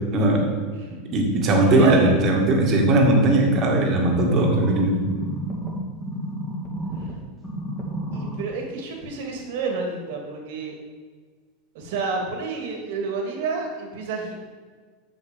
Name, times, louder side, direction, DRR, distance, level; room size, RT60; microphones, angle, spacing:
voice 1, 0.1-0.5 1.1-5.0, right 2 dB, 35° right, 1 dB, 2.2 m, -19 dB
voice 2, 1.4-2.2 8.1-10.8 11.7-14.4, right 4 dB, 70° right, 2 dB, 2.5 m, -29 dB
sound 1, 4.0-7.1 7.4-8.4 9.0-9.1, right 1 dB, 5° left, 2.5 m, -31 dB
7.1 x 6.6 x 7.1 m, 1.5 s
supercardioid pair, 130°, 0 cm